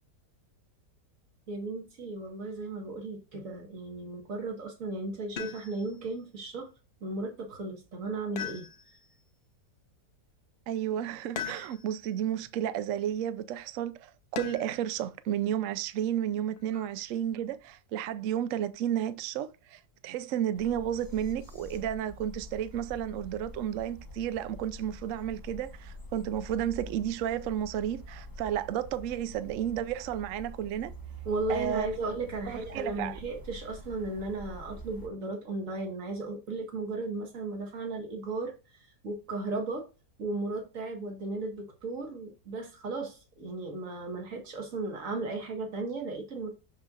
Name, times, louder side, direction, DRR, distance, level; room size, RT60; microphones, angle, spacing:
voice 1, 1.5-6.7 7.0-8.7 16.7-16.9 31.3-38.5 39.0-39.9 40.2-46.5, right 3 dB, 50° right, 1.9 m, -35 dB
sound 1, 5.4-6.0 8.3-9.1 11.3-12.1 14.3-14.9 16.6-17.2, left 8 dB, 75° left, 0.5 m, -40 dB
voice 2, 10.7-30.9 31.5-31.9 32.5-33.2, right 10 dB, 70° right, 0.8 m, -32 dB
sound 2, 20.5-35.1, left 1 dB, 20° left, 0.7 m, -46 dB
6.6 x 6.1 x 2.5 m
omnidirectional pair, 1.8 m